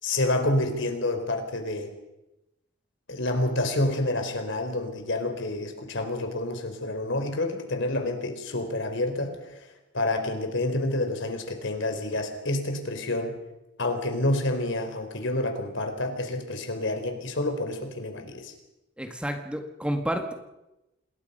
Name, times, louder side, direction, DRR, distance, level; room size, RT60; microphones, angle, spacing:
voice 1, 0.0-1.9 3.1-9.7 9.9-13.4 13.8-18.5, left 2 dB, 65° left, 6 dB, 4.1 m, -28 dB
voice 2, 19.0-20.3, equal, 5° right, 5 dB, 1.9 m, -30 dB
27.5 x 21.0 x 5.6 m, 0.94 s
head